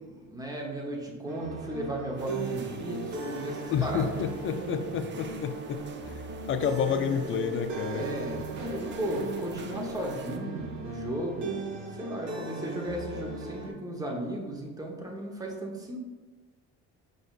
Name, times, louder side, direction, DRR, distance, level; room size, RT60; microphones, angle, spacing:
voice 1, 0.0-4.1 7.9-16.0, right 1 dB, 10° right, -1 dB, 1.1 m, -35 dB
sound 1, 1.3-13.7, right 2 dB, 55° right, 1.2 m, -38 dB
sound 2, 2.2-10.4, right 5 dB, 35° right, 0.4 m, -45 dB
voice 2, 3.7-6.1 6.5-8.1, left 6 dB, 35° left, 8 dB, 0.5 m, -29 dB
5.0 x 4.0 x 2.4 m, 1.2 s
supercardioid pair, 75°, 34 cm